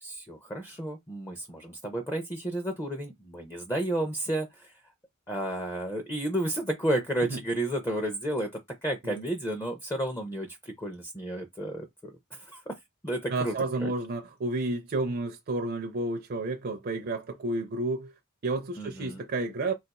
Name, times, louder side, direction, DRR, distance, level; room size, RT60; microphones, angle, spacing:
voice 1, 0.0-4.7 5.3-8.5 8.8-12.7 13.0-13.5 13.8-13.9 18.8-19.2, right 1 dB, 15° left, 0.4 m, -32 dB
voice 2, 13.3-18.1 18.4-19.7, right 2 dB, 45° right, 0.4 m, -31 dB
2.4 x 2.3 x 4.0 m
head